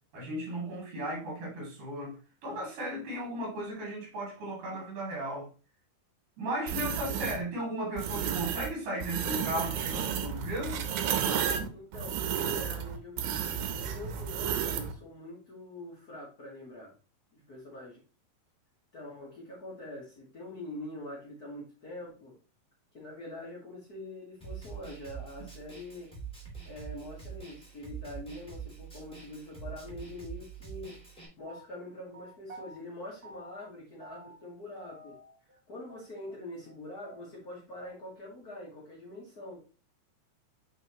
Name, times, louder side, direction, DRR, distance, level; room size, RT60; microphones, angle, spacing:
voice 1, 0.1-2.2 2.4-5.5 6.4-11.7, right 1 dB, 70° right, 4.1 m, -36 dB
sound 1, 6.7-7.4 8.0-8.7 9.0-14.9, right 8 dB, 90° right, 2.5 m, -32 dB
voice 2, 11.7-16.9 17.3-18.0 18.9-22.4 22.9-26.1 26.6-31.0 31.4-35.2 35.7-39.6, left 1 dB, 80° left, 0.8 m, -44 dB
Snare drum, 24.4-31.2, right 7 dB, 5° left, 0.8 m, -44 dB
sound 2, 31.4-32.8 33.2-33.7 34.0-34.5 34.8-35.6 35.9-36.0 36.3-36.4 36.6-36.8 37.0-38.0, right 1 dB, 40° right, 1.5 m, -50 dB
7.9 x 4.1 x 2.9 m
omnidirectional pair, 4.0 m